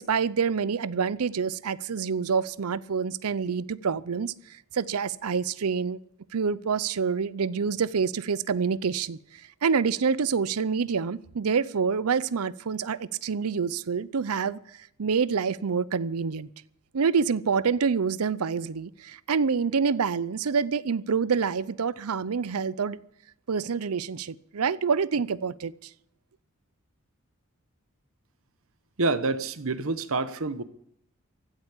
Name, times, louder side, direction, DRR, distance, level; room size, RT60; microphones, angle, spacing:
voice 1, 0.0-4.3 4.7-6.0 6.3-9.2 9.6-14.6 15.0-16.5 16.9-23.0 23.5-25.9, right 5 dB, 85° right, 0.6 m, -27 dB
voice 2, 29.0-30.6, right 3 dB, 70° right, 1.0 m, -27 dB
15.5 x 8.1 x 9.8 m
head